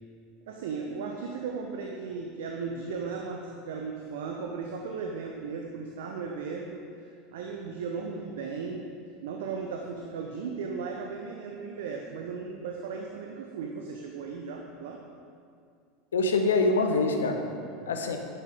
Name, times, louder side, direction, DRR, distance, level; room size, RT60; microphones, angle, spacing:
voice 1, 0.5-8.9 9.2-15.0 17.5-17.9, right 5 dB, 65° right, 1 dB, 0.9 m, -36 dB
voice 2, 16.1-17.5 17.9-18.2, left 3 dB, 75° left, 4 dB, 1.0 m, -25 dB
12.0 x 10.0 x 3.6 m, 2.3 s
figure-of-eight pair, 80°, 0 cm